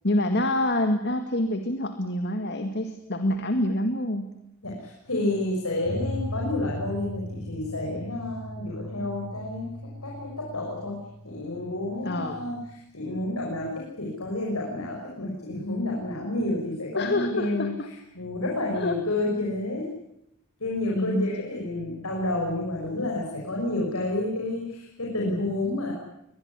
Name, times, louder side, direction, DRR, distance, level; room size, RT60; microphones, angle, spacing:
voice 1, 0.0-4.3 12.0-12.4 17.0-17.9 18.8-19.0 21.0-21.3, left 1 dB, 50° left, 7 dB, 2.0 m, -26 dB
voice 2, 4.6-11.0 11.2-17.7 18.1-19.9 20.6-25.9, left 1 dB, 80° left, -1 dB, 6.2 m, -30 dB
sound 1, 5.8-12.7, left 1 dB, 45° right, 5.1 m, -38 dB
23.0 x 20.5 x 9.9 m, 0.81 s
head